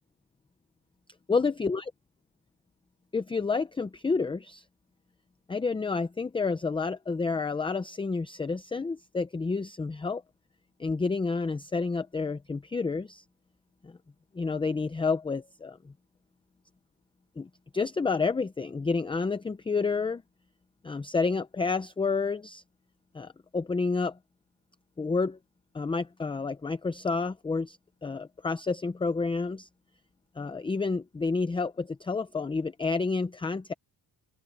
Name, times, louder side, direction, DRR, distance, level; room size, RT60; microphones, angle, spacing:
voice 1, 1.3-1.9 3.1-4.6 5.5-10.2 10.8-13.2 13.8-14.0 14.3-15.9 17.4-20.2 20.8-22.6 23.1-24.2 25.0-25.4 25.7-29.7 30.4-33.7, left 4 dB, 10° left, 0.5 m, -29 dB
open air
cardioid pair, 165°, 43 cm